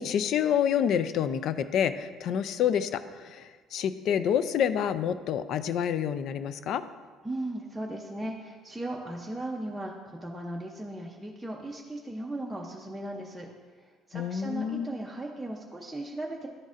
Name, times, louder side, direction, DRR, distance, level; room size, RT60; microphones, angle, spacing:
voice 1, 0.0-6.8 14.1-14.9, left 8 dB, 60° left, 13 dB, 0.3 m, -28 dB
voice 2, 7.2-13.5 13.8-16.5, right 1 dB, 5° right, -2 dB, 0.6 m, -37 dB
11.5 x 4.0 x 2.5 m, 1.5 s
cardioid pair, 110°, 0 cm